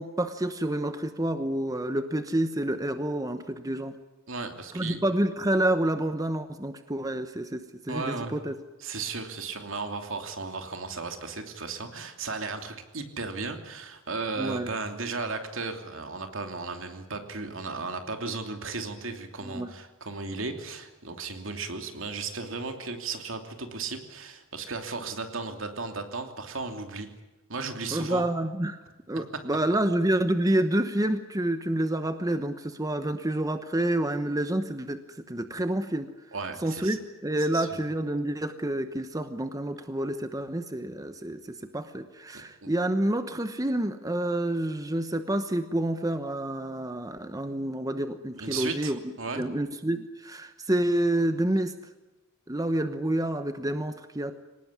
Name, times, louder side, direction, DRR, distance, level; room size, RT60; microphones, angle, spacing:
voice 1, 0.0-3.9 4.7-8.6 14.4-14.7 19.4-19.7 27.9-28.8 29.1-36.1 36.6-49.0 49.3-51.7 52.5-54.3, right 1 dB, 15° right, 9 dB, 1.0 m, -28 dB
voice 2, 4.3-5.0 7.9-8.4 8.8-27.1 27.5-28.2 29.3-29.4 36.3-37.0 37.5-37.7 42.6-42.7 48.4-49.4, right 4 dB, 65° right, 6 dB, 2.9 m, -35 dB
24.0 x 19.0 x 9.8 m, 1.1 s
head